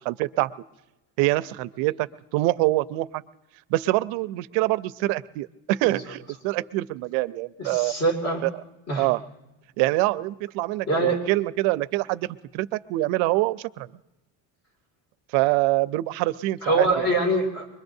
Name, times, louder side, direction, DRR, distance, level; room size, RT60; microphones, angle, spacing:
voice 1, 0.0-0.5 1.2-2.1 2.3-3.2 3.7-7.9 8.4-8.5 9.0-9.2 9.8-12.3 12.5-13.9 15.3-16.9, right 19 dB, 85° right, 16 dB, 0.6 m, -25 dB
voice 2, 7.6-8.4 8.9-9.1 10.9-11.2 16.6-17.7, right 2 dB, 30° left, 1 dB, 2.5 m, -23 dB
25.0 x 21.5 x 2.7 m, 1.0 s
cardioid pair, 170°, 45 cm